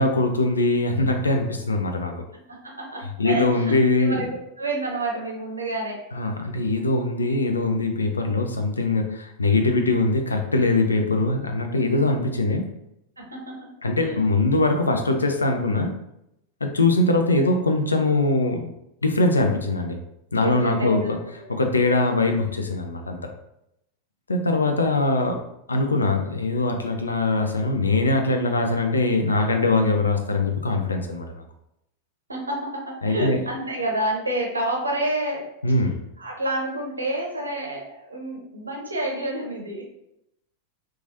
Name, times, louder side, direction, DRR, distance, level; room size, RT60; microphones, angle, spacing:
voice 1, 0.0-2.1 3.2-4.2 6.1-12.7 13.8-16.0 16.6-18.7 19.0-20.0 20.3-21.2 21.5-23.2 24.3-25.4 25.7-31.4 33.0-33.4 35.6-36.0, left 2 dB, 75° left, 4 dB, 0.4 m, -22 dB
voice 2, 2.3-4.3 4.6-6.0 13.2-13.7 14.0-14.2 20.4-21.5 32.3-35.5 36.2-39.8, right 1 dB, 80° right, -1 dB, 0.7 m, -29 dB
3.0 x 2.3 x 2.6 m, 0.82 s
figure-of-eight pair, 90°, 0 cm